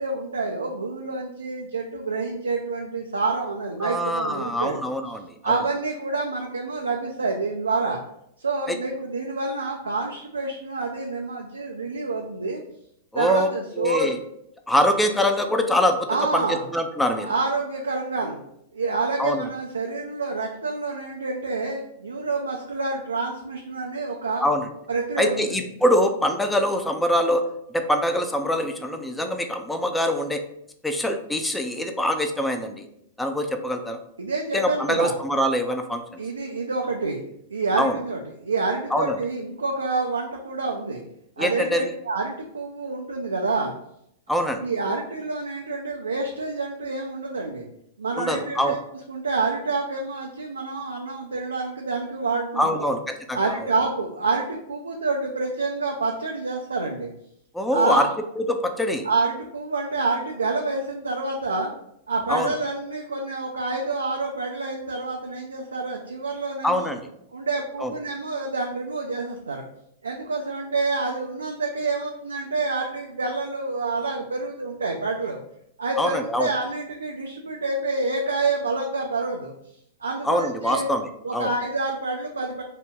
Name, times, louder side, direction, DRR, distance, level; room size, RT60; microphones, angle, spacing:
voice 1, 0.0-4.8 5.4-8.0 8.4-12.6 13.1-14.1 16.1-16.6 17.2-18.4 18.7-24.4 24.9-25.6 34.2-35.1 36.2-37.2 37.5-41.0 41.4-43.7 44.6-47.6 48.0-48.8 49.1-52.9 53.3-57.1 57.7-58.1 59.0-61.7 62.1-66.9 67.3-69.7 70.0-75.4 75.8-79.5 80.0-80.9 81.2-82.6, right 3 dB, 85° right, 1 dB, 0.3 m, -27 dB
voice 2, 3.8-5.6 8.7-8.8 13.1-13.5 13.8-14.2 14.7-17.3 19.2-19.5 24.4-24.7 25.2-27.5 27.7-30.4 30.8-32.9 33.2-34.0 34.5-36.2 37.8-37.9 38.9-39.1 41.4-41.9 44.3-44.6 48.2-48.7 52.6-53.4 57.5-58.1 58.4-59.0 62.3-62.5 66.6-67.1 67.8-67.9 76.0-76.5 80.2-81.5, equal, 5° left, 5 dB, 0.4 m, -24 dB
2.7 x 2.1 x 3.5 m, 0.76 s
hypercardioid pair, 100°, 0 cm